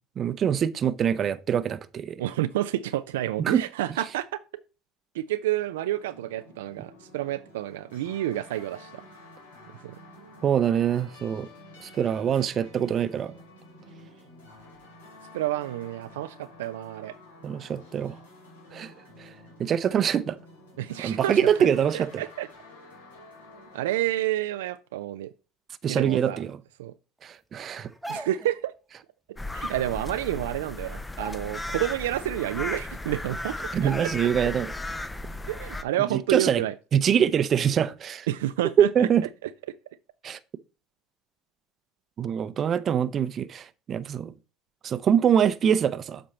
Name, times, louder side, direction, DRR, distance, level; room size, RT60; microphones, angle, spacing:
voice 1, 0.2-2.2 3.4-3.6 10.4-11.5 11.8-13.3 17.4-18.2 18.7-18.9 19.2-19.3 19.6-20.4 21.0-22.2 25.8-26.6 27.2-27.9 33.7-34.7 36.1-36.6 36.9-38.3 38.8-39.2 40.2-40.4 42.2-44.3 44.8-46.2, right 8 dB, 45° right, 0.6 m, -24 dB
voice 2, 2.2-4.4 5.1-9.0 9.8-9.9 15.3-17.1 20.8-21.7 21.9-22.5 23.7-25.3 25.9-26.4 26.8-26.9 28.1-28.7 29.5-33.6 33.8-34.1 35.5-36.7 38.3-38.9 39.4-39.5, right 14 dB, 85° right, 0.4 m, -29 dB
sound 1, 5.9-24.1, left 2 dB, 90° left, 2.7 m, -50 dB
sound 2, 27.8-28.6 30.0-30.1 30.4-30.7 31.1-31.9 32.3-32.4 33.2-33.3 33.8-34.4 34.8-35.0, right 2 dB, 5° right, 1.2 m, -40 dB
sound 3, 29.4-35.8, left 2 dB, 15° left, 0.8 m, -35 dB
7.8 x 4.4 x 4.2 m
hypercardioid pair, 75°, 0 cm